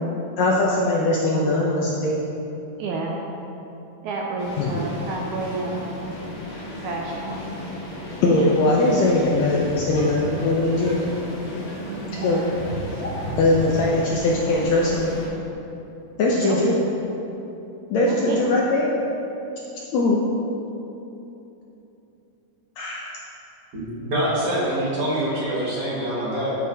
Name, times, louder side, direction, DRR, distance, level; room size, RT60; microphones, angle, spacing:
voice 1, 0.4-2.2 4.6-4.8 8.2-11.0 12.2-12.4 13.4-15.1 16.2-16.7 17.9-18.9 19.9-20.2 22.8-23.1, left 2 dB, 75° left, -3 dB, 1.7 m, -20 dB
voice 2, 2.8-3.2 4.0-5.8 6.8-7.4 11.8-12.3 16.4-16.6 18.0-18.4, right 3 dB, 80° right, -1 dB, 1.9 m, -30 dB
sound 1, 4.4-15.3, left 1 dB, 60° left, 2.8 m, -36 dB
sound 2, 9.1-14.1, equal, 40° left, 0.8 m, -35 dB
voice 3, 23.7-26.6, right 1 dB, 50° right, -7 dB, 2.4 m, -25 dB
10.5 x 8.4 x 2.8 m, 3.0 s
omnidirectional pair, 3.8 m